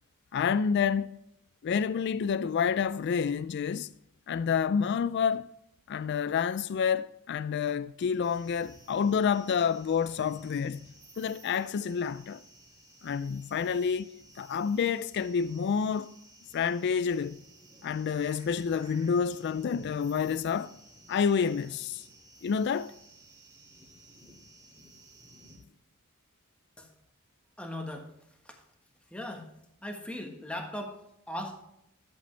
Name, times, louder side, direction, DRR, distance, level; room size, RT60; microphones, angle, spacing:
voice 1, 0.3-1.2 1.6-3.9 4.3-5.5 5.9-10.8 11.2-12.4 13.0-14.1 14.4-16.1 16.5-17.4 17.8-20.7 21.1-22.0 22.4-22.9, left 6 dB, 50° left, 0.3 m, -28 dB
sound 1, 8.2-25.6, right 1 dB, 20° right, 2.4 m, -55 dB
voice 2, 27.6-28.1 28.4-28.6 29.1-29.5 29.8-31.6, left 1 dB, 5° left, 1.4 m, -39 dB
12.5 x 7.8 x 3.3 m
head